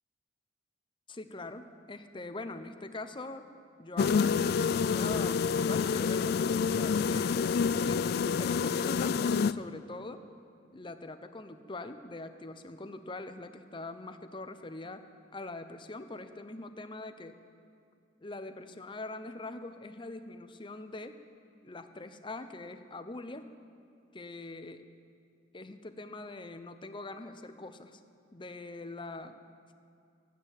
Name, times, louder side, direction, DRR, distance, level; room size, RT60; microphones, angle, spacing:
voice 1, 1.1-3.5 3.8-6.4 6.7-9.1 9.5-10.2 10.7-15.0 15.3-17.4 18.2-21.2 21.6-23.5 24.1-24.8 25.5-28.0 28.3-29.4, left 2 dB, 25° left, 9 dB, 0.7 m, -43 dB
sound 1, 4.0-9.5, left 6 dB, 55° left, 0.3 m, -28 dB
14.0 x 9.0 x 8.3 m, 2.4 s
head